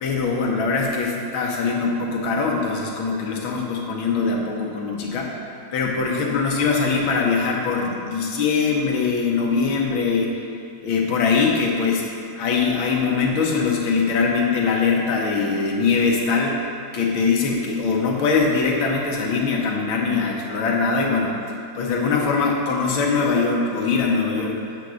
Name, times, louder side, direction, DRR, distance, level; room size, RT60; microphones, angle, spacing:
voice 1, 0.0-5.3 5.7-10.3 10.8-12.0 12.4-16.6 16.9-21.4 21.8-24.6, left 4 dB, 85° left, -1 dB, 1.8 m, -22 dB
8.7 x 3.9 x 6.1 m, 2.4 s
omnidirectional pair, 2.1 m